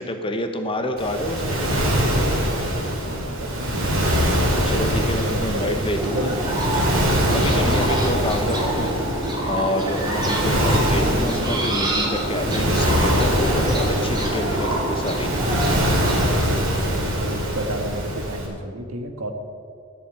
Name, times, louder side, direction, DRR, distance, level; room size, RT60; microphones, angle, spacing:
voice 1, 0.0-1.8 4.7-6.3 7.3-8.9 9.4-15.3, left 1 dB, 25° left, 6 dB, 1.1 m, -27 dB
Waves surf, 1.0-18.5, equal, 65° right, 3.0 m, -23 dB
voice 2, 3.0-4.1 4.9-5.7 6.0-6.4 7.0-8.1 16.2-19.3, right 1 dB, 90° right, 5 dB, 1.5 m, -32 dB
sound 1, 6.0-16.3, right 1 dB, 20° right, 2.2 m, -27 dB
12.5 x 7.1 x 8.5 m, 2.4 s
head